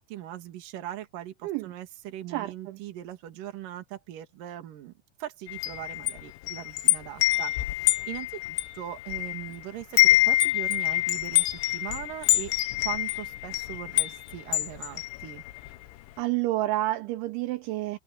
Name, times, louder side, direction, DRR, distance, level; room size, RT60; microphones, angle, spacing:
voice 1, 0.0-4.9 5.2-12.5 12.8-15.4, right 12 dB, 55° right, 2.9 m, -40 dB
voice 2, 2.3-2.8 16.2-18.0, right 16 dB, 80° right, 3.0 m, -29 dB
Wind chime, 5.5-9.6 9.8-15.8, left 17 dB, 80° left, 3.2 m, -26 dB
omnidirectional pair, 5.6 m